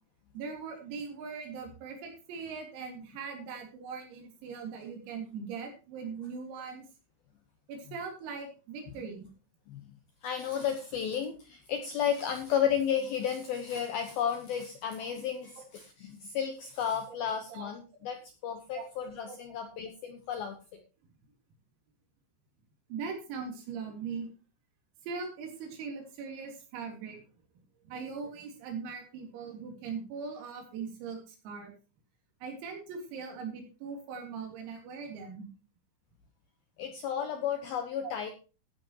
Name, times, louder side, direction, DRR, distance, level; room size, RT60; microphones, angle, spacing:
voice 1, 0.3-6.9 7.7-9.3 17.5-17.7 18.7-19.4 22.9-24.3 25.0-27.2 27.9-31.7 32.4-35.5, right 5 dB, 85° right, 3 dB, 6.1 m, -40 dB
voice 2, 10.2-20.8 36.8-38.3, left 8 dB, 75° left, 6 dB, 2.2 m, -33 dB
15.5 x 10.5 x 3.0 m, 0.32 s
omnidirectional pair, 6.0 m